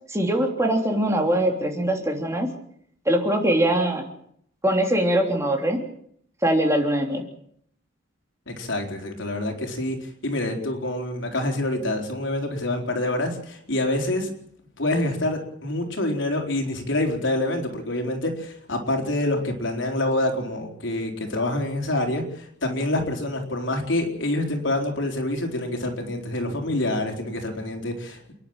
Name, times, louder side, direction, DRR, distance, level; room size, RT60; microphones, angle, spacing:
voice 1, 0.1-2.5 3.0-4.1 4.6-5.8 6.4-7.2, right 1 dB, 15° right, 2 dB, 3.3 m, -22 dB
voice 2, 8.5-14.3 14.8-28.3, left 1 dB, 75° left, 3 dB, 4.3 m, -26 dB
29.5 x 10.5 x 9.0 m, 0.68 s
head